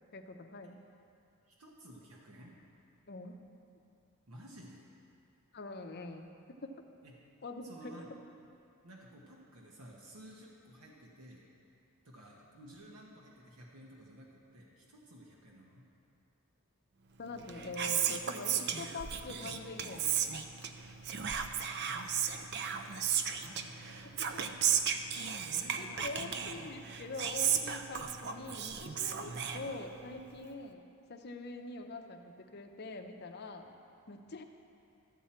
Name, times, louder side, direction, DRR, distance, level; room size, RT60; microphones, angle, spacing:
voice 1, 0.1-0.8 3.1-3.4 5.5-6.3 6.6-6.7 7.4-8.0 17.2-20.2 24.3-24.4 25.8-30.8 31.1-33.7 34.1-34.4, left 2 dB, 45° left, 4 dB, 0.6 m, -44 dB
voice 2, 1.5-2.6 4.3-4.9 7.0-7.2 7.6-8.1 8.8-11.4 12.0-15.9 21.8-22.1 22.7-22.9 23.3-24.2 25.4-26.6 33.6-33.8 34.2-34.4, right 1 dB, 90° right, -2 dB, 1.2 m, -53 dB
Whispering, 17.3-30.2, right 8 dB, 50° right, 0.4 m, -35 dB
13.5 x 7.2 x 4.3 m, 2.5 s
head